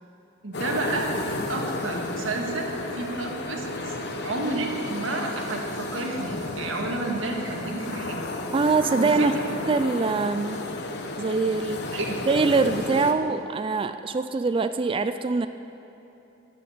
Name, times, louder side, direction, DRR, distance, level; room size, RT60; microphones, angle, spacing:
voice 1, 0.4-1.1 1.5-8.2 8.9-9.5 11.9-12.2, right 2 dB, 75° right, 0 dB, 1.9 m, -31 dB
sound 1, 0.5-13.1, left 2 dB, 60° left, 1.1 m, -32 dB
voice 2, 8.5-9.3 9.7-10.6 11.2-11.9 12.3-15.5, right 4 dB, 25° right, 10 dB, 0.3 m, -23 dB
14.0 x 6.9 x 9.8 m, 2.9 s
head